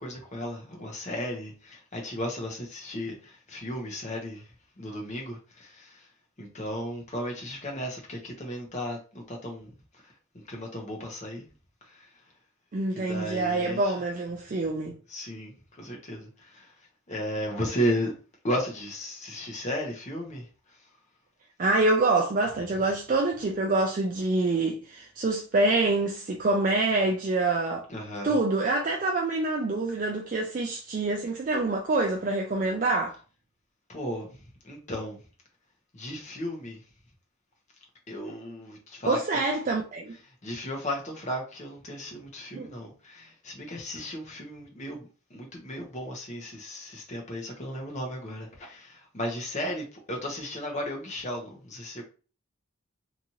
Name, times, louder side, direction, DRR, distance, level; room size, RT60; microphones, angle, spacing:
voice 1, 0.0-6.1 6.4-11.5 11.8-12.3 12.9-14.0 15.1-18.1 18.4-20.9 27.9-28.4 33.9-35.2 35.9-36.8 38.1-39.4 40.2-52.1, equal, 35° left, 0.8 m, -35 dB
voice 2, 12.7-15.0 21.6-27.9 28.2-33.2 39.0-40.2 42.5-42.7, right 2 dB, 35° right, 0.3 m, -26 dB
2.9 x 2.5 x 2.7 m
head